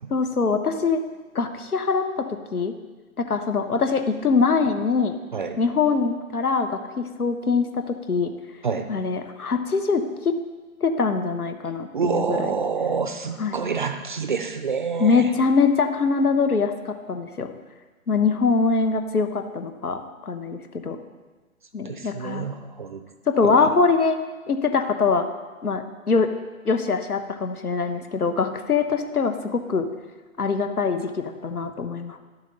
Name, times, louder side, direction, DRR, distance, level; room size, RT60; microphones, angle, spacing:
voice 1, 0.1-1.0 1.3-2.7 3.3-5.2 5.6-8.3 8.9-10.4 10.8-12.5 13.4-13.6 15.0-17.5 18.1-20.0 20.3-21.0 21.7-22.5 23.3-24.2 24.5-25.3 25.6-26.3 26.6-29.9 30.4-32.2, left 4 dB, 80° left, 7 dB, 1.1 m, -23 dB
voice 2, 11.9-15.2 21.8-23.0 23.4-23.7, right 5 dB, 35° right, 9 dB, 0.5 m, -27 dB
11.0 x 7.3 x 4.0 m, 1.3 s
figure-of-eight pair, 135°, 44 cm